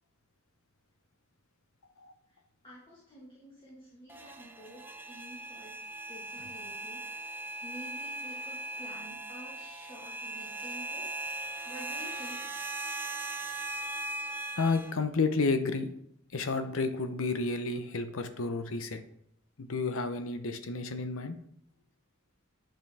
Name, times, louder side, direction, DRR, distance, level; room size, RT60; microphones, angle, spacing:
voice 1, 2.6-5.8 6.1-7.0 7.6-12.5, equal, 25° left, -6 dB, 1.7 m, -50 dB
sound 1, 4.1-14.9, right 2 dB, 10° right, 0.4 m, -39 dB
voice 2, 14.6-15.9 16.3-19.0 19.6-21.4, left 3 dB, 75° left, 9 dB, 0.8 m, -31 dB
8.8 x 5.3 x 3.5 m, 0.72 s
head